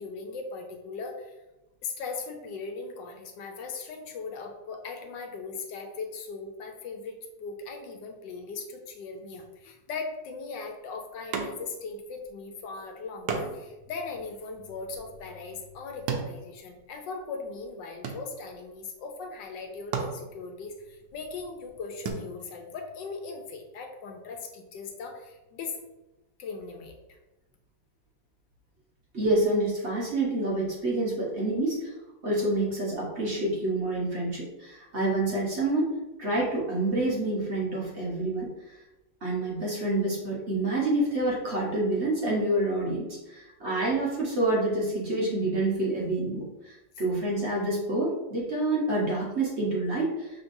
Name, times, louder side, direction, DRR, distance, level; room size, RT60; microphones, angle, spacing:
voice 1, 0.0-1.4 1.8-25.8 26.4-27.2, left 4 dB, 80° left, 4 dB, 1.4 m, -39 dB
sound 1, 11.3-11.9 12.2-12.3 13.3-17.2 17.5-18.7 19.4-19.5 19.8-22.1, right 5 dB, 70° right, 1.2 m, -36 dB
voice 2, 29.1-31.9 32.2-35.9 36.2-38.5 39.2-50.3, right 2 dB, 45° right, -5 dB, 1.2 m, -27 dB
5.8 x 3.5 x 2.6 m, 1.0 s
omnidirectional pair, 1.9 m